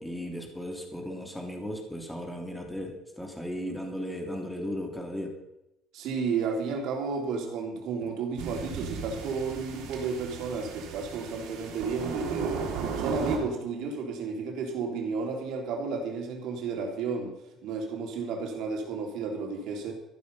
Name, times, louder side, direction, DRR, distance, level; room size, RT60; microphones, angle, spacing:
voice 1, 0.0-5.3, equal, 5° left, 2 dB, 3.2 m, -36 dB
voice 2, 5.9-12.7 13.0-17.3 17.6-19.9, right 4 dB, 70° right, 2 dB, 3.6 m, -32 dB
sound 1, 8.4-13.4, right 6 dB, 85° right, 3.5 m, -36 dB
14.0 x 11.5 x 5.5 m, 0.87 s
cardioid pair, 105°, 0 cm